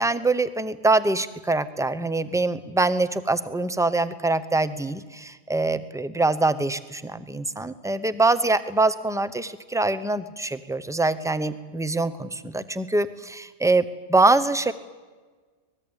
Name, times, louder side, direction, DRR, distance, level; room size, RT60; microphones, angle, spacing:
voice 1, 0.0-13.8 14.1-14.7, right 2 dB, 5° right, 13 dB, 0.6 m, -24 dB
25.5 x 19.5 x 8.9 m, 1.4 s
omnidirectional pair, 1.3 m